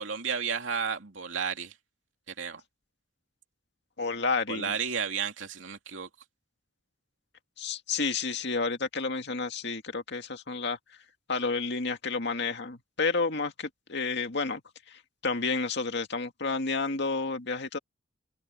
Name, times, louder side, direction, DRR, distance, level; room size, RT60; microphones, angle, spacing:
voice 1, 0.0-1.7 2.4-2.6 4.5-6.1, right 6 dB, 75° right, 2.7 m, -32 dB
voice 2, 4.0-4.7 7.6-10.8 11.3-14.6 14.9-17.8, left 4 dB, 60° left, 2.2 m, -30 dB
open air
head